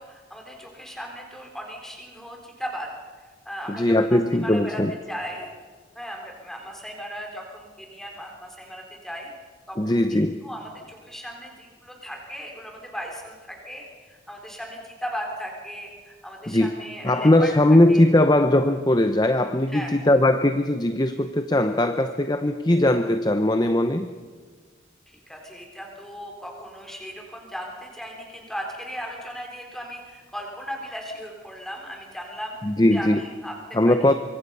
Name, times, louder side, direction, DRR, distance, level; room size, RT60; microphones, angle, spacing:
voice 1, 0.0-2.9 3.2-4.8 5.1-5.5 5.9-9.3 9.7-17.5 17.9-18.0 19.7-19.9 25.1-34.1, equal, ahead, 1 dB, 3.8 m, -37 dB
voice 2, 3.7-4.9 9.8-10.4 16.5-16.8 17.0-24.1 32.6-33.2 33.7-34.1, left 1 dB, 20° left, 8 dB, 0.7 m, -20 dB
24.5 x 23.0 x 5.6 m, 1.5 s
head